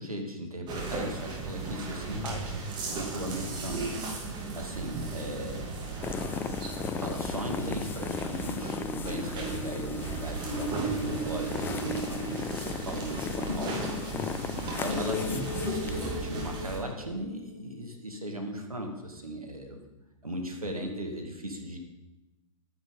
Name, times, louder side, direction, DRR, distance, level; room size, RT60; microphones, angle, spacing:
voice 1, 0.0-2.5 2.9-5.7 6.8-13.8 14.6-19.8 20.2-21.8, right 1 dB, 85° right, 3 dB, 2.4 m, -38 dB
sound 1, 0.7-16.8, right 3 dB, 25° right, 2.6 m, -36 dB
sound 2, 6.0-16.1, left 6 dB, 10° left, 0.4 m, -37 dB
sound 3, 8.4-17.7, left 1 dB, 40° left, 2.8 m, -38 dB
11.5 x 9.8 x 5.4 m, 1.0 s
figure-of-eight pair, 110°, 18 cm